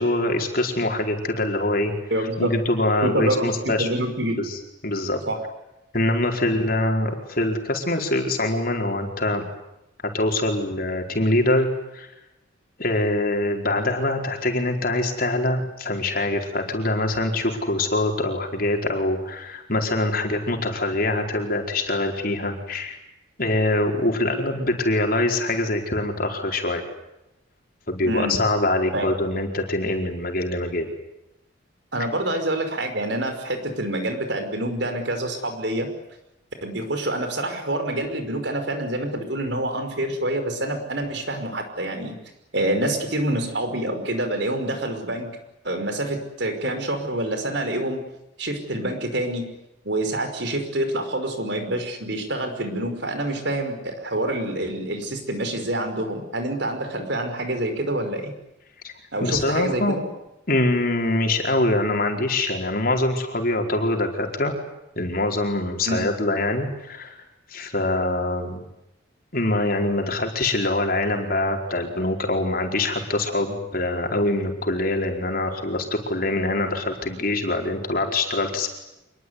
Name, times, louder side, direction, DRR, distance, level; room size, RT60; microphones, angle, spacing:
voice 1, 0.0-1.9 2.2-3.9 4.3-5.2 5.9-9.4 10.1-11.7 11.9-12.1 12.8-23.0 23.4-26.8 27.9-30.9 58.8-58.9 59.2-60.0 60.5-64.5 65.0-67.2 67.5-68.6 69.3-78.8, left 2 dB, 45° left, 3 dB, 4.7 m, -24 dB
voice 2, 2.1-2.5 3.0-4.4 5.3-5.4 28.0-28.3 28.9-29.1 31.9-35.9 36.6-42.2 42.5-45.3 45.6-48.0 48.4-49.5 49.8-58.3 59.1-60.0 65.9-66.1, right 1 dB, 60° right, 7 dB, 5.5 m, -26 dB
27.0 x 21.5 x 9.7 m, 0.90 s
head